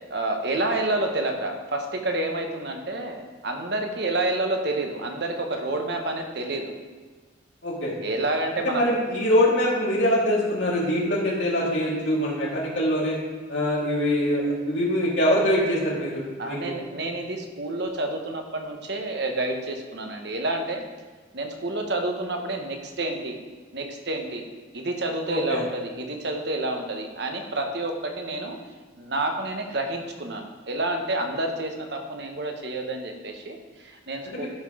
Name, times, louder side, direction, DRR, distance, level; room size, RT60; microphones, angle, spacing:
voice 1, 0.1-6.7 8.0-8.9 16.4-20.8 21.3-23.4 23.7-24.4 24.7-28.6 29.0-34.5, right 2 dB, 60° right, 4 dB, 1.2 m, -29 dB
voice 2, 7.6-7.9 8.6-13.1 13.5-16.7 25.3-25.6 34.3-34.5, equal, 75° left, -5 dB, 2.2 m, -24 dB
12.0 x 5.9 x 4.9 m, 1.4 s
head